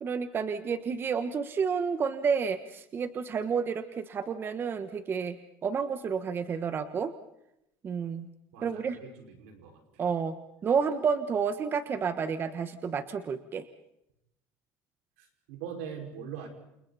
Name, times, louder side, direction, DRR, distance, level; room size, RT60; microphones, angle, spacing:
voice 1, 0.0-7.1 7.8-8.3 8.6-9.0 10.0-10.4 10.6-13.7, right 6 dB, 35° right, 10 dB, 1.3 m, -30 dB
voice 2, 8.5-9.8 15.5-16.5, right 7 dB, 90° right, 4 dB, 5.5 m, -41 dB
29.0 x 28.5 x 4.2 m, 0.83 s
cardioid pair, 120°, 7 cm